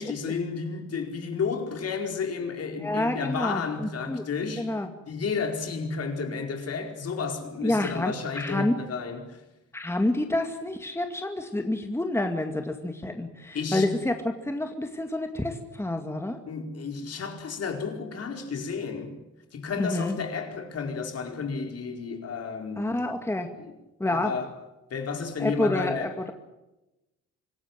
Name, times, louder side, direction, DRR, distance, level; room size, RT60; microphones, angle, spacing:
voice 1, 0.0-4.7 5.1-9.4 13.5-13.9 16.5-19.1 19.5-23.0 23.5-23.7 24.0-24.5 24.9-26.1, left 5 dB, 55° left, 4.8 m, -32 dB
voice 2, 2.8-4.3 4.6-4.9 7.6-8.7 9.7-16.4 19.8-20.2 22.8-23.5 24.0-24.3 25.4-26.3, left 1 dB, 10° left, 2.2 m, -28 dB
26.0 x 16.0 x 9.0 m
cardioid pair, 90°, 30 cm